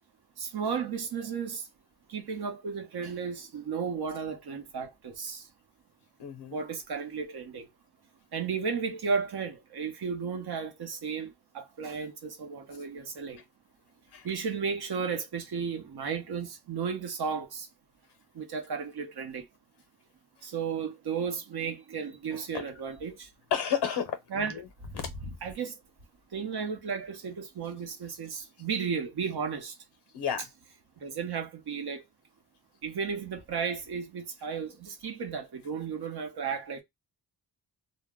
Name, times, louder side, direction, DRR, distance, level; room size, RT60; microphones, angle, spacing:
voice 1, 0.4-1.6 2.1-5.4 6.5-7.7 8.3-13.4 14.2-17.7 18.3-19.5 20.4-23.3 24.3-24.5 24.8-24.9 25.2-25.7 26.3-29.7 31.0-32.0 32.8-36.8, right 6 dB, 65° right, 0.8 m, -34 dB
voice 2, 6.2-6.6 14.1-14.3 22.5-22.7 23.5-24.6 24.9-25.1 30.1-30.5, left 8 dB, 70° left, 0.6 m, -31 dB
2.1 x 2.0 x 3.4 m
wide cardioid pair, 130°, 42 cm